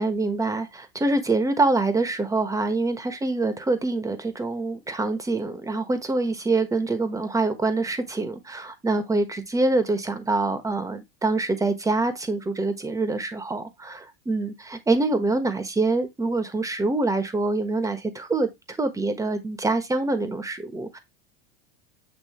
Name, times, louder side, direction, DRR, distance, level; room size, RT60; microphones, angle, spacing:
voice 1, 0.0-21.0, right 3 dB, 10° right, 1.2 m, -25 dB
8.5 x 3.0 x 4.3 m
supercardioid pair, 120°, 31 cm